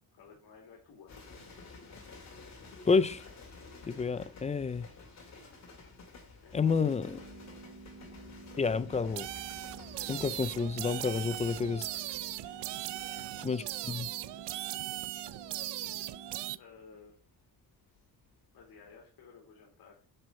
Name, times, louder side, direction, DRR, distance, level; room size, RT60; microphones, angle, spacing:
voice 1, 0.1-1.4 6.4-6.9 7.2-7.7 12.9-13.5 16.6-17.2 18.5-20.0, left 5 dB, 65° left, 2.5 m, -56 dB
sound 1, 1.1-18.3 18.6-19.0, left 3 dB, 40° left, 2.2 m, -52 dB
voice 2, 2.9-3.2 3.9-4.9 6.5-7.2 8.6-9.3 10.1-11.9 13.4-14.1, left 5 dB, 20° left, 0.3 m, -29 dB
sound 2, 6.5-16.6, right 4 dB, 35° right, 3.1 m, -51 dB
sound 3, 9.2-16.6, right 16 dB, 90° right, 0.6 m, -39 dB
7.7 x 5.1 x 6.8 m
cardioid pair, 165°, 40 cm